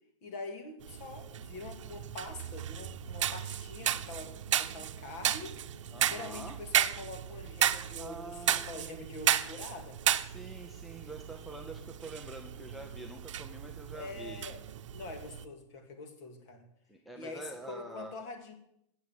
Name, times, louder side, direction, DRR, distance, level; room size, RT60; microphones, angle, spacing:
voice 1, 0.2-5.6 6.1-10.0 13.9-14.6 14.9-16.6 17.1-18.5, left 3 dB, 35° left, 6 dB, 2.2 m, -45 dB
sound 1, 0.8-15.4, right 10 dB, 80° right, 0.9 m, -34 dB
voice 2, 5.9-6.6 7.6-9.0 10.3-14.4 16.9-18.2, right 2 dB, ahead, 3 dB, 0.6 m, -46 dB
13.0 x 8.3 x 8.9 m, 0.76 s
supercardioid pair, 175°, 16 cm